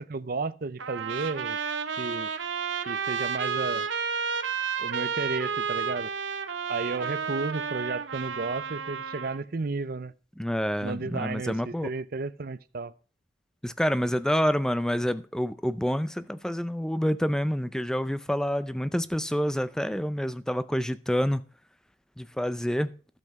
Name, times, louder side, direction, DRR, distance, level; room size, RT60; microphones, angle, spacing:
voice 1, 0.0-1.6 2.0-2.3 2.8-3.9 4.8-6.1 6.7-10.1 10.8-12.9, right 3 dB, 50° right, 0.6 m, -33 dB
Trumpet, 0.8-9.4, right 6 dB, 85° right, 0.9 m, -31 dB
voice 2, 10.4-11.9 13.6-21.4 22.2-22.9, equal, 5° left, 0.5 m, -28 dB
12.0 x 7.8 x 4.8 m
head